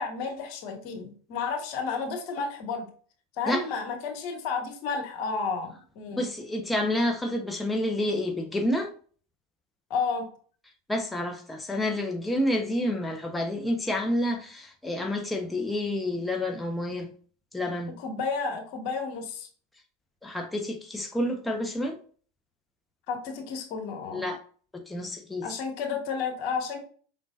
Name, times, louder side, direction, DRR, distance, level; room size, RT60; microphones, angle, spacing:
voice 1, 0.0-2.9 3.4-6.3 9.9-10.3 18.0-19.5 23.1-24.3 25.4-26.8, left 5 dB, 55° left, 1.6 m, -32 dB
voice 2, 6.2-8.9 10.9-17.1 17.5-17.9 20.2-22.0 24.1-24.4 24.7-25.5, left 1 dB, 10° left, 0.9 m, -29 dB
5.3 x 3.8 x 2.5 m
hypercardioid pair, 95°, 0 cm